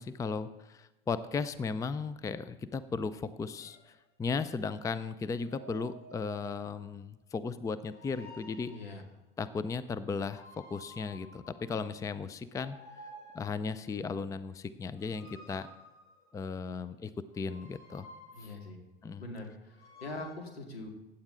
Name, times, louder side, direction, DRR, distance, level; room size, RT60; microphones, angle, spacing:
voice 1, 0.0-8.7 9.4-12.8 13.3-15.7 16.3-18.1 18.4-18.5 19.0-19.2, left 5 dB, 10° left, 14 dB, 0.5 m, -36 dB
sound 1, 3.6-3.9 5.3-6.9 7.9-9.0 10.2-12.0 12.5-13.7 14.9-16.5 17.3-18.7 19.7-20.4, right 1 dB, 65° left, 4.9 m, -52 dB
voice 2, 8.7-9.0 18.3-18.8 19.2-20.9, left 2 dB, 85° left, 2 dB, 2.4 m, -43 dB
16.0 x 9.9 x 3.8 m, 0.99 s
hypercardioid pair, 85°, 30 cm